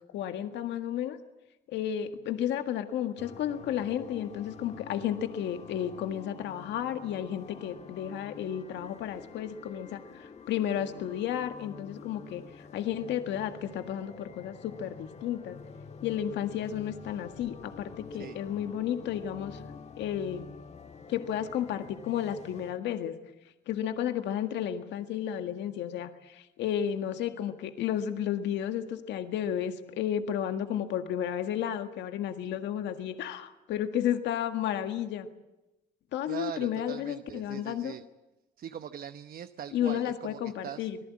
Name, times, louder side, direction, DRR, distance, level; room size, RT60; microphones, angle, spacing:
voice 1, 0.1-1.2 1.7-15.6 16.0-19.6 20.0-20.5 21.1-23.1 23.7-35.3 36.1-37.9 39.7-41.0, left 10 dB, 85° left, 7 dB, 1.8 m, -32 dB
sound 1, 3.2-22.7, left 5 dB, 40° left, 2.2 m, -48 dB
voice 2, 36.3-38.0 38.6-40.9, right 9 dB, 55° right, 11 dB, 1.0 m, -41 dB
26.0 x 19.0 x 8.6 m, 0.98 s
cardioid pair, 105°, 18 cm